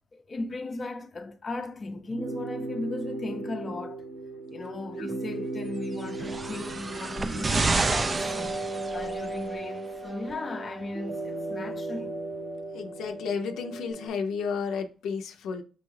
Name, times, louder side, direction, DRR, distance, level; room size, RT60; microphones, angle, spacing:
voice 1, 0.1-4.0 4.5-8.3 8.9-12.2, left 2 dB, 35° left, 0.6 m, -37 dB
sound 1, 2.1-14.1, right 2 dB, 50° right, 0.8 m, -36 dB
sound 2, 6.0-9.4 10.3-10.4, right 3 dB, 30° right, 0.4 m, -29 dB
voice 2, 12.7-15.6, left 5 dB, 80° left, 0.5 m, -32 dB
6.1 x 2.4 x 3.1 m
cardioid pair, 90°, 0 cm